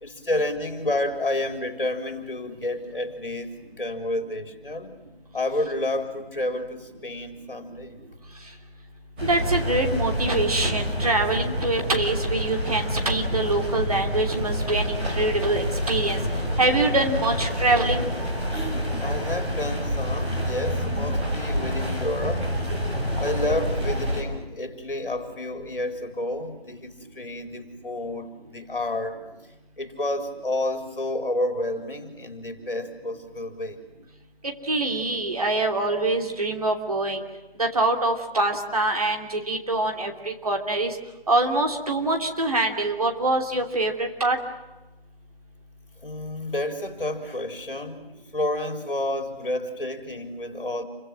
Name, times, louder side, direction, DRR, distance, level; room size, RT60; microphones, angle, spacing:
voice 1, 0.0-4.9 5.3-7.9 19.0-22.5 23.2-29.2 29.8-33.8 46.0-48.1 48.3-50.8, left 1 dB, 60° left, 6 dB, 4.2 m, -30 dB
sound 1, 9.2-24.2, equal, 10° right, 3.7 m, -27 dB
voice 2, 9.2-16.2 16.6-18.1 34.7-37.2 37.6-41.0 41.3-44.4, right 2 dB, 35° right, 3 dB, 3.1 m, -24 dB
29.0 x 24.0 x 7.6 m, 1.1 s
figure-of-eight pair, 170°, 31 cm